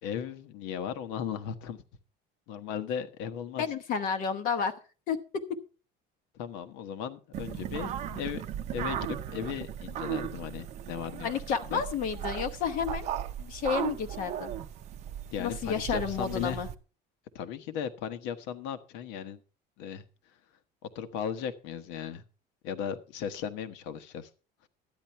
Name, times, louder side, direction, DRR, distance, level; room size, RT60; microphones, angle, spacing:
voice 1, 0.0-1.8 2.5-3.6 6.3-8.4 8.7-11.8 15.3-16.6 17.3-19.4 19.8-20.0 20.9-22.2 22.6-24.3, left 8 dB, 70° left, 10 dB, 1.3 m, -36 dB
voice 2, 3.6-4.7 5.1-5.6 11.2-13.1 13.4-14.5 15.4-16.7, left 6 dB, 45° left, 8 dB, 1.0 m, -31 dB
sound 1, 7.3-16.8, right 10 dB, 35° right, 0.7 m, -37 dB
12.5 x 9.9 x 4.5 m, 0.36 s
cardioid pair, 180°, 19 cm